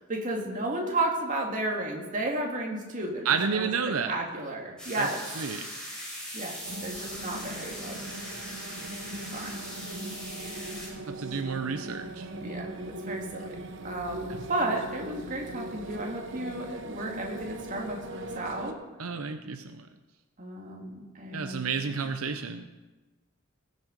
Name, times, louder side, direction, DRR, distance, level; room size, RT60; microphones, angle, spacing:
voice 1, 0.0-3.7 4.0-5.2 6.3-6.5 6.8-8.0 9.1-9.6 12.4-18.8 20.4-22.1, right 2 dB, 40° right, 0 dB, 2.2 m, -33 dB
voice 2, 3.2-4.1 5.0-5.1 5.4-5.7 11.0-12.3 19.0-19.9 21.3-22.7, right 5 dB, 90° right, 8 dB, 0.7 m, -30 dB
sound 1, 4.8-10.9, equal, 5° left, 4.5 m, -40 dB
sound 2, 6.6-18.7, right 1 dB, 60° right, 0.9 m, -40 dB
19.0 x 6.8 x 5.2 m, 1.2 s
head